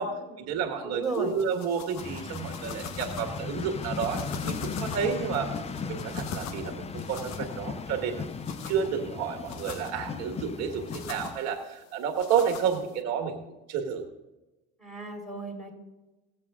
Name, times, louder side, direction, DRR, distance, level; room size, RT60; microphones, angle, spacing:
voice 1, 0.0-5.6 5.9-8.2 8.6-13.4 13.7-14.0, right 7 dB, 60° right, 4 dB, 1.5 m, -30 dB
voice 2, 0.8-1.3 14.8-15.7, right 3 dB, ahead, 0 dB, 4.4 m, -34 dB
sound 1, 1.0-13.0, left 6 dB, 60° left, 1.1 m, -43 dB
sound 2, 2.0-11.4, left 5 dB, 20° left, 0.6 m, -37 dB
17.0 x 7.5 x 3.6 m, 1.1 s
supercardioid pair, 95°, 30 cm